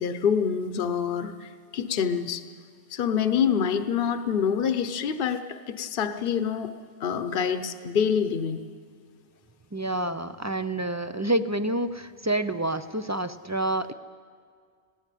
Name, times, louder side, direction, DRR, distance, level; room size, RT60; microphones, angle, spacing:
voice 1, 0.0-2.4 2.9-6.7 7.0-8.6, left 7 dB, 65° left, 9 dB, 1.0 m, -26 dB
voice 2, 9.7-13.9, right 1 dB, 25° right, 11 dB, 0.4 m, -28 dB
18.5 x 16.5 x 9.1 m, 2.1 s
omnidirectional pair, 1.0 m